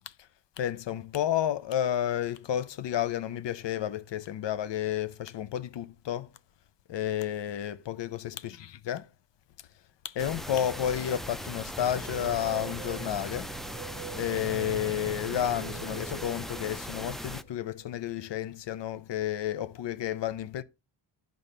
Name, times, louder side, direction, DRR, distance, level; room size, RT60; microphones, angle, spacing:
voice 1, 0.6-6.3 6.9-9.1 10.0-13.5 14.1-20.6, left 11 dB, 70° left, 0.6 m, -31 dB
sound 1, 10.2-17.4, equal, ahead, 0.4 m, -39 dB
sound 2, 11.8-17.9, right 7 dB, 30° right, 0.7 m, -43 dB
9.0 x 3.9 x 6.7 m
cardioid pair, 105°, 45 cm